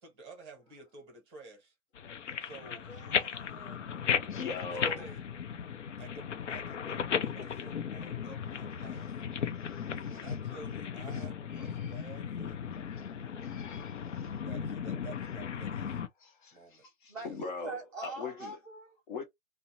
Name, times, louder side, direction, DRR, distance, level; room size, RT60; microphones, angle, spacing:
voice 1, 0.0-1.7 2.4-2.9 4.5-5.2 5.7-9.2 10.0-12.7 14.4-16.0 16.5-16.8 17.2-17.4, right 3 dB, 20° right, 0.9 m, -51 dB
sound 1, 1.9-16.1, left 7 dB, 65° left, 0.6 m, -36 dB
voice 2, 2.9-4.0 17.1-19.0, right 2 dB, ahead, 0.4 m, -44 dB
voice 3, 4.2-5.1 9.7-10.2 11.1-11.2 11.5-12.0 12.8-13.1 13.4-14.3 16.2-18.6 19.1-19.2, left 4 dB, 40° left, 0.9 m, -42 dB
2.7 x 2.1 x 2.8 m
hypercardioid pair, 145°, 39 cm